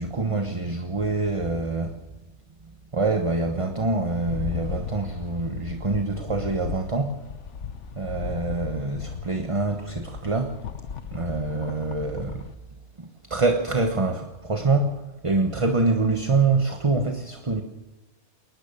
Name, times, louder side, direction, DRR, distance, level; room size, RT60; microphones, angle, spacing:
voice 1, 0.0-2.0 2.9-7.2 7.9-10.6 11.1-12.5 13.0-17.6, right 3 dB, 30° right, 6 dB, 1.2 m, -25 dB
Rattle, 4.1-12.5, left 6 dB, 80° left, 1.3 m, -36 dB
22.0 x 19.5 x 7.0 m, 1.1 s
omnidirectional pair, 1.2 m